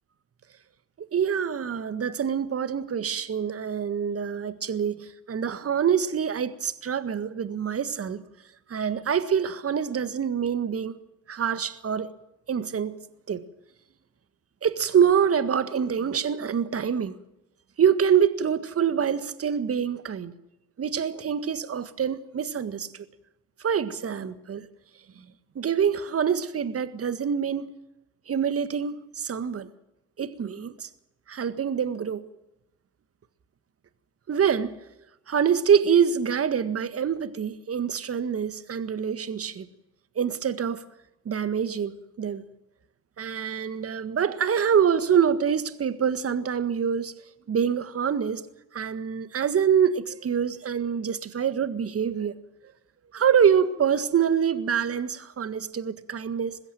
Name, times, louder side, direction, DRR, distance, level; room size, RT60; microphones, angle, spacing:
voice 1, 1.1-8.2 8.7-11.0 11.3-12.1 12.5-13.0 13.3-13.4 14.6-17.1 17.8-20.3 20.8-23.1 23.6-24.7 25.6-27.7 28.3-29.7 30.2-30.9 31.3-32.3 34.3-34.8 35.3-39.7 40.2-40.8 41.3-42.4 43.2-47.1 47.5-48.4 48.7-52.3 53.1-56.6, right 7 dB, 30° right, 1.7 m, -25 dB
21.0 x 16.0 x 9.0 m
hypercardioid pair, 70°, 44 cm